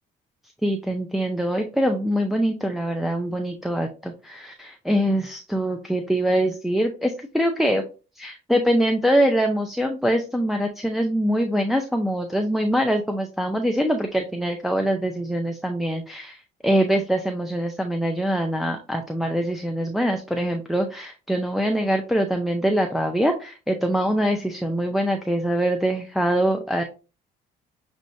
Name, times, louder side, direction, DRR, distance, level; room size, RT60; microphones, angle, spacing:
voice 1, 0.6-7.9 8.2-26.8, equal, ahead, 3 dB, 0.5 m, -23 dB
6.4 x 3.2 x 2.6 m, 0.33 s
cardioid pair, 110°, 17 cm